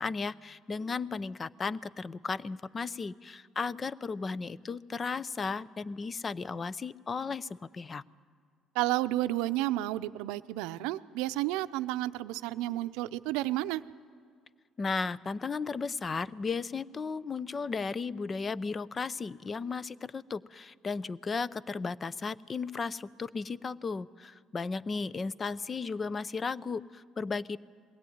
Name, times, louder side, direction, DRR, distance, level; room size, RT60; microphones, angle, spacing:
voice 1, 0.0-8.0 14.8-27.6, left 4 dB, 35° left, 19 dB, 0.6 m, -35 dB
voice 2, 8.7-13.8, right 16 dB, 85° right, 13 dB, 0.6 m, -31 dB
21.5 x 17.0 x 9.5 m, 2.1 s
supercardioid pair, 70°, 0 cm